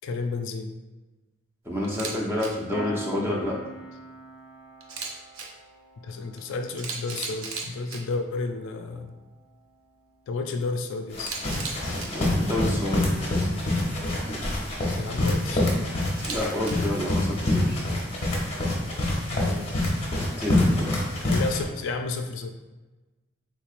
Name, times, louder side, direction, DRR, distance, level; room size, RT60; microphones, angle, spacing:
voice 1, 0.0-0.7 6.0-9.2 10.3-11.4 15.0-15.8 19.3-20.0 21.2-22.5, left 3 dB, 65° left, 6 dB, 0.3 m, -32 dB
voice 2, 1.7-3.5 12.1-13.0 16.3-17.8 20.4-20.9, left 1 dB, 10° right, -4 dB, 0.6 m, -29 dB
Camera, 1.8-2.1 2.4-2.5 4.8-5.5 6.4-6.5 6.8-8.0 11.2-12.1 16.1-16.7, right 5 dB, 80° right, 0.5 m, -35 dB
Piano, 2.7-13.8, right 1 dB, 65° right, 1.0 m, -47 dB
sound 1, 11.1-21.6, left 1 dB, 30° left, 0.8 m, -26 dB
3.5 x 3.0 x 2.4 m, 1.2 s
head